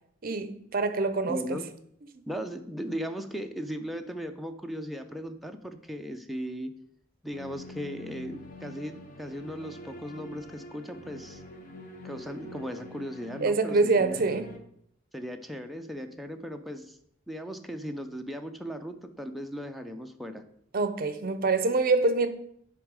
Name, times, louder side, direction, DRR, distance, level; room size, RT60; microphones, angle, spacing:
voice 1, 0.2-1.6 2.1-2.2 13.4-14.5 20.7-22.3, right 3 dB, 50° right, 0.7 m, -25 dB
voice 2, 1.2-1.7 2.3-6.7 7.2-11.4 12.0-14.2 15.1-17.0 17.3-20.4, equal, ahead, 0.5 m, -37 dB
sound 1, 7.3-14.6, left 1 dB, 45° left, 0.9 m, -46 dB
9.8 x 3.6 x 4.8 m
head